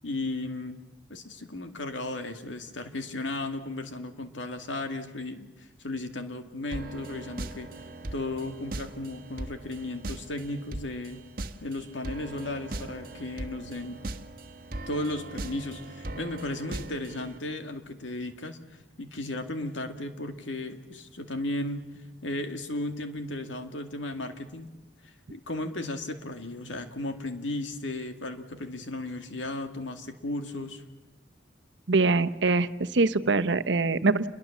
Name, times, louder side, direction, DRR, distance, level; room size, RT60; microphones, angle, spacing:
voice 1, 0.0-0.8 1.1-7.7 8.1-11.2 11.6-14.1 14.9-21.8 22.2-24.7 25.3-30.8, left 2 dB, 90° left, 7 dB, 2.2 m, -35 dB
sound 1, 6.7-17.4, right 2 dB, 50° right, 1.2 m, -40 dB
voice 2, 31.9-34.3, right 3 dB, 75° right, 13 dB, 0.9 m, -23 dB
28.5 x 22.0 x 7.3 m, 1.1 s
head